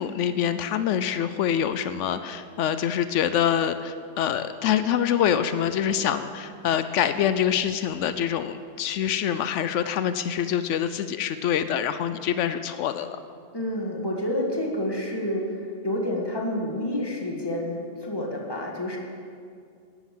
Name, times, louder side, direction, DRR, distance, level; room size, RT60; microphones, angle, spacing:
voice 1, 0.0-13.2, left 9 dB, 85° left, 11 dB, 0.9 m, -25 dB
voice 2, 13.5-19.0, left 1 dB, 20° left, -1 dB, 1.8 m, -29 dB
11.5 x 9.8 x 7.6 m, 2.2 s
omnidirectional pair, 1.2 m